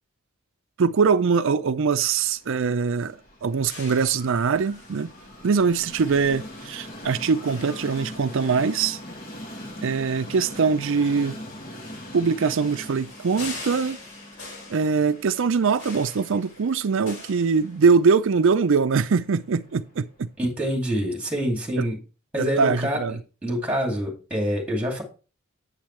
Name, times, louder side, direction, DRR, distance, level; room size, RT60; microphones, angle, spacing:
voice 1, 0.8-5.1 5.4-9.0 9.8-11.4 12.1-14.0 14.7-20.3 21.8-21.9 22.4-23.2, right 5 dB, 60° right, 0.5 m, -22 dB
Train, 2.1-20.2, left 1 dB, 45° left, 2.0 m, -42 dB
sound 1, 3.7-18.2, left 2 dB, 65° left, 5.2 m, -44 dB
voice 2, 20.4-22.0 22.3-25.0, equal, 5° right, 2.5 m, -26 dB
8.8 x 8.3 x 3.2 m
head